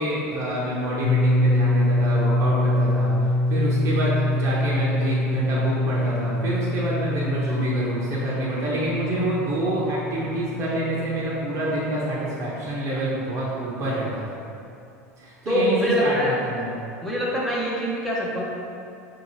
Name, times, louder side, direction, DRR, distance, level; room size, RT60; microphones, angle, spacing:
voice 1, 0.0-14.4 15.2-16.8, right 1 dB, 40° right, -7 dB, 0.9 m, -27 dB
sound 1, 1.0-12.8, left 1 dB, 35° left, 0.7 m, -25 dB
voice 2, 15.4-16.3 17.0-18.4, equal, 5° left, -7 dB, 0.8 m, -24 dB
4.4 x 2.8 x 3.0 m, 2.5 s
hypercardioid pair, 90°, 8 cm